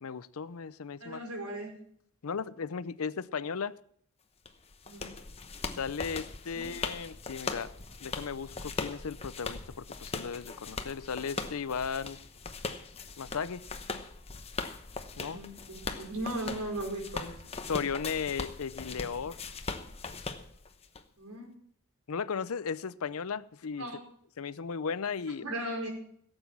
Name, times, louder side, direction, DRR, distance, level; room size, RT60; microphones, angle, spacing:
voice 1, 0.0-1.2 2.2-3.8 5.8-7.7 8.0-12.2 13.2-13.6 15.2-15.4 17.7-19.4 22.1-23.9 24.4-25.5, left 6 dB, 70° left, 0.6 m, -36 dB
voice 2, 1.0-1.7 4.9-5.1 6.5-6.8 15.3-17.3 21.1-21.5 23.8-24.0 25.4-25.9, right 1 dB, 80° right, 5.0 m, -37 dB
sound 1, 4.5-21.0, left 4 dB, 25° left, 0.9 m, -40 dB
16.5 x 8.1 x 7.2 m
head